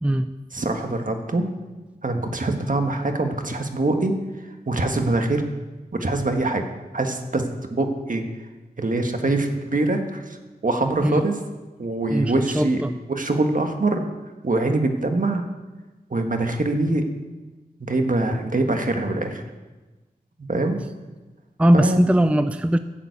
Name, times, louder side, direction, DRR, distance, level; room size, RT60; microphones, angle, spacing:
voice 1, 0.0-0.3 11.0-11.2 12.1-12.9 21.6-22.8, right 1 dB, 5° right, 10 dB, 0.5 m, -19 dB
voice 2, 0.5-1.4 2.0-5.5 5.9-6.6 6.9-7.4 7.7-8.2 8.8-11.3 11.8-12.8 13.1-14.1 14.4-15.4 16.1-17.1 17.8-19.4 20.5-20.8 21.7-22.0, right 2 dB, 55° right, 5 dB, 1.5 m, -23 dB
11.5 x 7.3 x 8.4 m, 1.2 s
wide cardioid pair, 60°, 17 cm